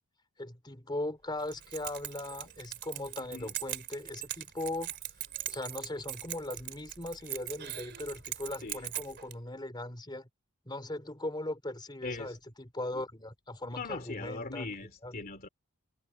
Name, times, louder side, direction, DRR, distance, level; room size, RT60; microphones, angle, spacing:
voice 1, 0.4-5.0 5.5-10.3 10.7-14.7 15.0-15.2, left 1 dB, 20° left, 3.7 m, -39 dB
Keys jangling, 1.4-9.3, right 12 dB, 50° right, 4.0 m, -41 dB
voice 2, 12.0-12.4 12.9-13.0 13.6-15.5, left 3 dB, 40° left, 2.7 m, -40 dB
head